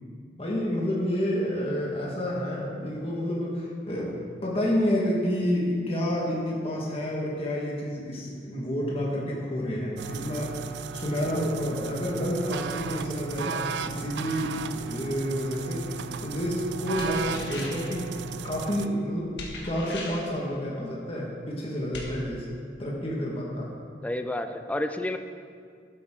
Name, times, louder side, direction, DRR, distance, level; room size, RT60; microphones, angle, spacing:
voice 1, 0.4-4.1 4.4-10.6 10.9-18.1 18.4-19.3 19.6-22.5 22.8-23.7, equal, 35° left, -4 dB, 1.7 m, -29 dB
sound 1, 10.0-18.9, right 6 dB, 75° right, 0.4 m, -35 dB
sound 2, 17.0-17.9 19.4-20.4 21.9-22.1, left 2 dB, 75° left, 1.8 m, -39 dB
voice 2, 24.0-25.2, left 1 dB, 10° left, 7 dB, 0.4 m, -30 dB
12.0 x 8.7 x 3.8 m, 2.1 s
head